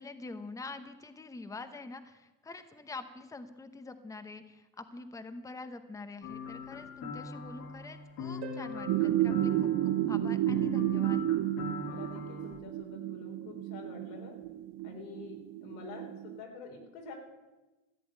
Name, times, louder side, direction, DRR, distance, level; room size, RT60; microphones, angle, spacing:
voice 1, 0.0-11.2, left 3 dB, 10° left, 10 dB, 0.9 m, -45 dB
sound 1, 6.2-12.6, left 5 dB, 55° left, 2.5 m, -41 dB
Harp, 8.4-10.9 14.4-14.5, right 7 dB, 75° right, 2.6 m, -48 dB
sound 2, 8.9-16.4, right 14 dB, 50° right, 0.7 m, -31 dB
voice 2, 11.8-14.3 14.8-17.1, left 4 dB, 85° left, 1 dB, 4.2 m, -47 dB
14.5 x 8.6 x 9.1 m, 1.1 s
supercardioid pair, 130°, 42 cm